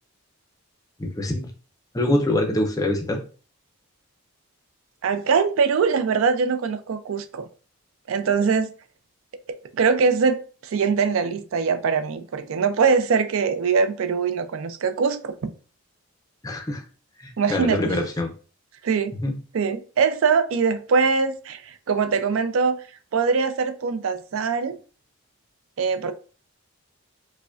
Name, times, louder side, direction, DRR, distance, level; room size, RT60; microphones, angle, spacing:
voice 1, 1.0-1.5 1.9-3.2 16.4-16.8 17.2-18.3 19.2-19.3, left 1 dB, 15° left, 0.5 m, -24 dB
voice 2, 5.0-7.5 8.1-8.7 9.7-15.5 17.4-18.0 18.8-19.1 19.5-22.8 23.1-24.7 25.8-26.1, right 5 dB, 70° right, 0.4 m, -22 dB
4.7 x 2.1 x 2.4 m
head